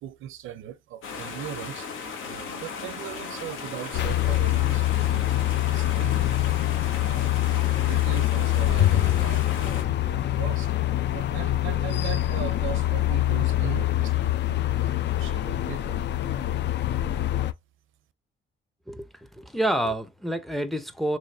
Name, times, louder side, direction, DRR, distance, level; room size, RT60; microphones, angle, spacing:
voice 1, 0.0-6.2 6.7-10.8 11.1-16.0, right 11 dB, 80° right, 0.6 m, -39 dB
sound 1, 1.0-9.8, left 5 dB, 80° left, 1.1 m, -36 dB
sound 2, 3.9-17.5, left 14 dB, 60° left, 0.4 m, -25 dB
Bowed string instrument, 8.8-11.3, left 11 dB, 30° left, 0.8 m, -29 dB
voice 2, 18.9-21.2, right 1 dB, ahead, 0.5 m, -28 dB
3.9 x 3.1 x 2.6 m
cardioid pair, 90°, 20 cm